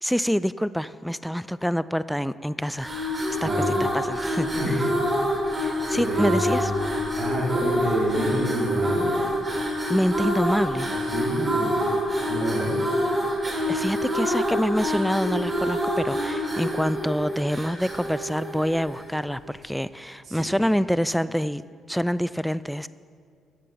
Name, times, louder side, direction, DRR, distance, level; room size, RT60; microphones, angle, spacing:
voice 1, 0.0-2.9 3.4-3.5 3.8-4.9 5.6-6.7 9.9-10.9 13.7-21.6 21.9-22.9, equal, ahead, 16 dB, 0.3 m, -26 dB
sound 1, 2.7-19.2, equal, 20° right, 2.9 m, -27 dB
voice 2, 5.9-6.9 7.2-9.1 10.7-11.7 12.3-13.3 20.2-20.5, equal, 45° right, -7 dB, 3.7 m, -28 dB
14.5 x 6.1 x 6.9 m, 2.2 s
cardioid pair, 100°, 0 cm